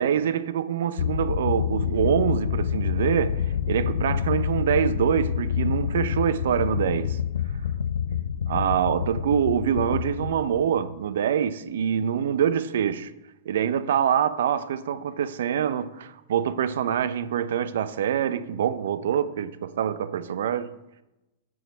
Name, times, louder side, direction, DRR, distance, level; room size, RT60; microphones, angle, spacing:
voice 1, 0.0-7.2 8.1-8.2 8.5-13.1 13.5-20.7, right 9 dB, 70° right, 0.6 m, -25 dB
sound 1, 1.0-11.1, left 8 dB, 80° left, 0.4 m, -27 dB
7.7 x 6.0 x 6.7 m
hypercardioid pair, 100°, 0 cm